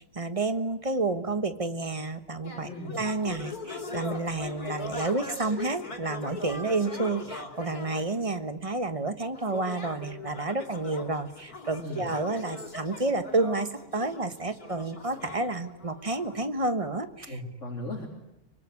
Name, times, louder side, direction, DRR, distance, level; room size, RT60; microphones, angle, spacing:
voice 1, 0.0-17.4, right 3 dB, 25° right, 10 dB, 1.3 m, -30 dB
sound 1, 2.4-8.1 9.3-16.5, left 3 dB, 80° left, 4.4 m, -40 dB
voice 2, 2.6-3.0 11.8-12.1 17.3-18.1, left 1 dB, 50° left, -1 dB, 4.1 m, -37 dB
24.5 x 24.0 x 9.7 m, 0.87 s
omnidirectional pair, 1.6 m